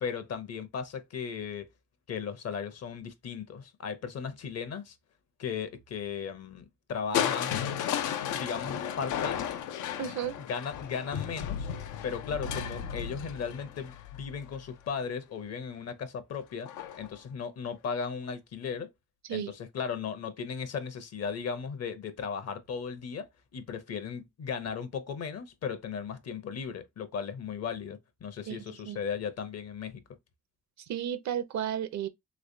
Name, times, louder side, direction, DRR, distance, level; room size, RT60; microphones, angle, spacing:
voice 1, 0.0-1.7 2.1-5.0 5.4-7.6 8.3-9.5 10.4-11.7 12.0-16.7 16.9-18.9 19.3-30.0, left 6 dB, 55° left, 0.8 m, -36 dB
Crushing, 7.1-15.1 16.7-17.2 17.7-17.8, left 9 dB, 80° left, 0.6 m, -34 dB
voice 2, 10.0-10.4 19.2-19.5 28.5-29.0 30.8-32.1, right 9 dB, 65° right, 0.6 m, -33 dB
3.2 x 3.2 x 2.6 m
cardioid pair, 90°, 30 cm